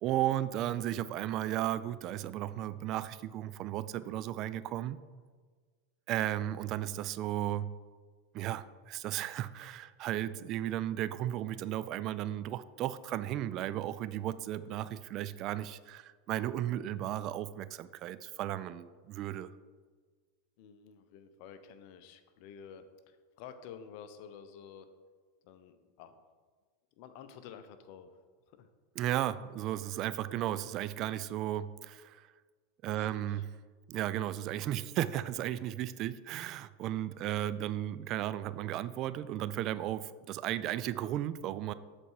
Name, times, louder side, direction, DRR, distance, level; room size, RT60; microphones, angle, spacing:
voice 1, 0.0-5.0 6.1-7.7 8.3-19.5 29.0-32.3 32.8-33.4 33.9-41.7, right 12 dB, 45° right, 15 dB, 0.3 m, -35 dB
voice 2, 20.6-24.9 25.4-26.2 27.0-28.7 32.9-33.4, left 7 dB, 60° left, 10 dB, 0.7 m, -51 dB
7.9 x 4.1 x 4.7 m, 1.5 s
hypercardioid pair, 100°, 0 cm